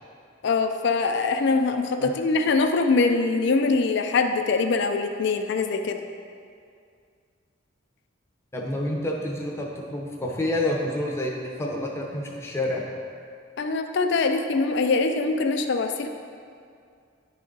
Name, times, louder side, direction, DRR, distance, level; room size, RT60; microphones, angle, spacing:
voice 1, 0.4-6.0 13.6-16.1, left 4 dB, 60° left, 6 dB, 0.4 m, -23 dB
voice 2, 8.5-12.8, left 1 dB, 15° left, -1 dB, 0.7 m, -28 dB
10.0 x 3.7 x 3.8 m, 2.3 s
head